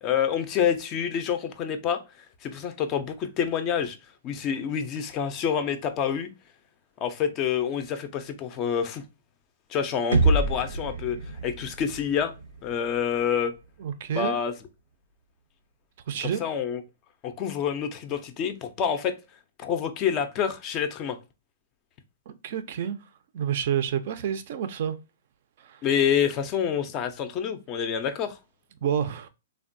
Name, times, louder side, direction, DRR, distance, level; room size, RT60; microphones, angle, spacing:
voice 1, 0.0-2.0 2.4-4.0 4.2-6.3 7.0-9.0 9.7-11.2 11.4-12.3 12.6-13.5 14.1-14.5 16.2-16.8 17.2-19.2 19.6-21.2 25.8-28.4, left 8 dB, 25° left, 0.4 m, -27 dB
sound 1, 10.1-14.0, right 2 dB, 90° right, 0.6 m, -28 dB
voice 2, 13.8-14.4 16.1-16.4 22.3-23.0 23.3-25.0 25.6-25.8 28.8-29.3, right 9 dB, 50° right, 0.4 m, -29 dB
3.3 x 2.1 x 2.5 m
hypercardioid pair, 160°, 0 cm